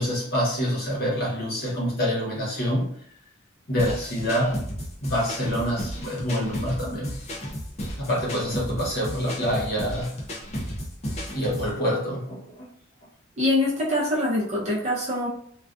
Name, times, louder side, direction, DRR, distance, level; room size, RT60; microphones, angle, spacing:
voice 1, 0.0-2.9 3.7-4.6 5.0-7.2 8.0-10.2 11.3-12.7, equal, 50° left, -4 dB, 1.0 m, -26 dB
sound 1, 3.8-11.7, equal, 30° left, 0.5 m, -34 dB
voice 2, 13.4-15.3, left 1 dB, 35° right, -5 dB, 0.8 m, -24 dB
2.3 x 2.3 x 2.4 m, 0.63 s
head